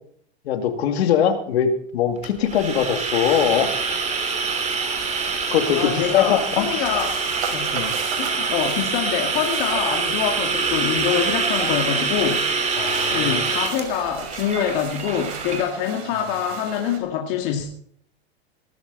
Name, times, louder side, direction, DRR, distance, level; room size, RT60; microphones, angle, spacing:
voice 1, 0.4-3.7 5.2-6.6 7.7-8.0 12.7-13.5, left 8 dB, 80° left, 6 dB, 2.4 m, -22 dB
sound 1, 2.2-15.7, right 4 dB, 20° right, 3.3 m, -25 dB
sound 2, 3.2-17.0, right 8 dB, 70° right, 4.0 m, -36 dB
voice 2, 5.7-7.2 7.5-7.8 8.2-12.5 13.1-17.7, left 8 dB, 55° left, 2 dB, 2.2 m, -25 dB
18.0 x 13.0 x 4.0 m, 0.63 s
hypercardioid pair, 115°, 32 cm